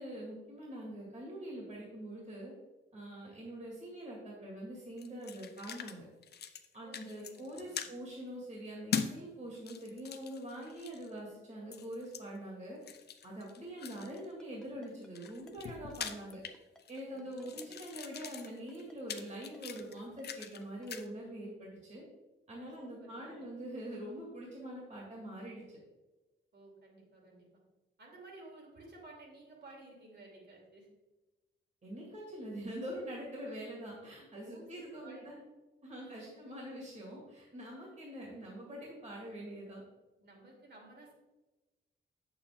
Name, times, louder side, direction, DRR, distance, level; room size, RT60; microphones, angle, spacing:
voice 1, 0.0-2.5 2.9-6.0 6.7-12.8 13.2-16.4 16.9-22.0 22.5-25.6 31.8-35.4 35.8-39.8, right 1 dB, 35° right, -3 dB, 2.0 m, -44 dB
sound 1, 5.0-6.0 6.2-6.7 6.9-7.9 8.9-9.1 9.5-11.1 11.7-12.2 12.8-14.2 14.9-17.0 17.3-20.6 20.9-21.1, left 7 dB, 55° left, 0.6 m, -42 dB
voice 2, 6.8-7.9 15.8-16.4 17.1-17.7 22.5-23.4 26.5-27.5 28.0-30.9 34.4-35.3 36.0-36.5 40.2-41.1, right 2 dB, 60° right, -1 dB, 2.6 m, -55 dB
Ringtone, 14.2-20.9, left 1 dB, 5° left, 0.7 m, -60 dB
8.6 x 7.1 x 3.5 m, 1.1 s
wide cardioid pair, 170°, 20 cm